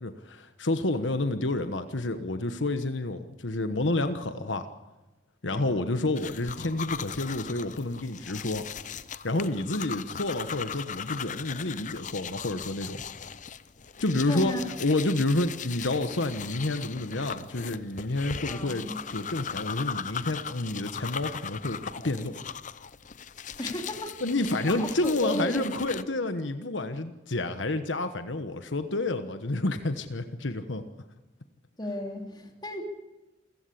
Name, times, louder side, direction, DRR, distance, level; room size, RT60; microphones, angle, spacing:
voice 1, 0.0-4.7 5.4-8.7 9.2-13.0 14.0-14.5 14.8-22.3 24.2-30.8, left 2 dB, 75° left, 9 dB, 1.3 m, -29 dB
voice 2, 5.5-6.1 14.2-14.7 18.5-19.0 23.6-24.2 24.7-25.6 31.8-32.8, left 1 dB, 20° left, 3 dB, 3.2 m, -34 dB
sound 1, 6.2-26.0, left 7 dB, 40° left, 0.7 m, -39 dB
28.0 x 15.5 x 8.5 m, 1.1 s
head